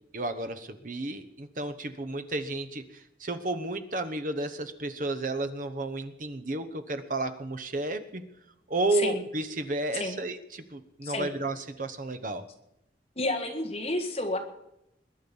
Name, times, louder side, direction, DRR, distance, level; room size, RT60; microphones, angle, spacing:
voice 1, 0.1-8.2 8.7-12.4, right 2 dB, 45° right, 11 dB, 1.0 m, -32 dB
voice 2, 13.2-14.4, left 2 dB, 35° left, 3 dB, 1.8 m, -30 dB
21.5 x 10.0 x 5.5 m, 0.85 s
head